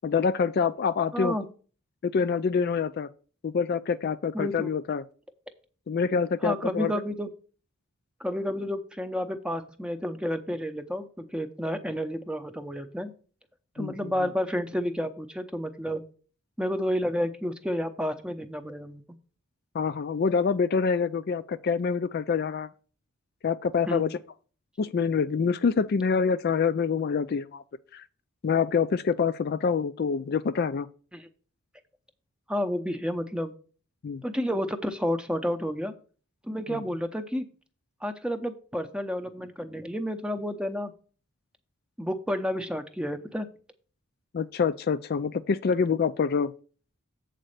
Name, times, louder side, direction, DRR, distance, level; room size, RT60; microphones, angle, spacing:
voice 1, 0.0-1.4 2.0-3.1 3.4-5.0 5.9-6.9 13.8-14.3 19.7-22.7 23.4-24.2 24.8-27.6 27.9-28.0 28.4-30.9 34.0-34.2 36.7-36.8 44.3-46.5, left 5 dB, 45° left, 0.3 m, -26 dB
voice 2, 1.1-1.5 4.3-4.7 6.4-7.3 8.2-13.1 13.8-16.0 16.6-19.0 23.9-24.1 31.1-31.3 32.5-33.5 34.2-35.9 36.4-37.4 38.0-40.9 42.0-43.5, equal, 5° right, 0.6 m, -30 dB
7.8 x 4.2 x 6.5 m
head